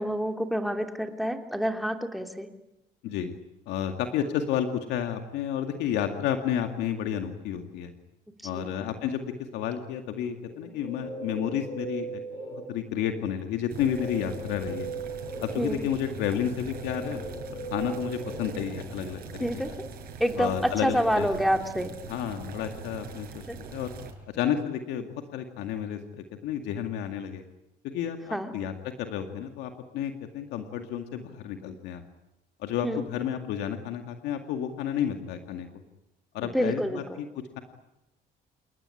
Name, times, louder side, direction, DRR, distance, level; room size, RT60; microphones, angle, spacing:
voice 1, 0.0-2.5 8.5-8.7 15.6-15.8 19.4-19.7 20.2-21.9 23.5-23.6 28.3-28.5 32.8-33.0 36.5-37.0, equal, ahead, 5 dB, 3.0 m, -27 dB
voice 2, 3.7-7.9 8.4-9.2 9.5-14.9 15.4-17.2 17.7-19.6 20.4-21.4 22.1-23.9 24.3-27.4 27.8-28.7 29.0-32.0 32.6-35.7 36.3-37.3, left 9 dB, 90° left, 6 dB, 2.2 m, -31 dB
Guitar, 10.5-13.0 13.8-19.2, right 3 dB, 70° left, 7.7 m, -39 dB
sound 1, 13.7-24.1, right 4 dB, 65° right, 6.2 m, -42 dB
29.0 x 19.0 x 10.0 m, 0.96 s
cardioid pair, 110°, 17 cm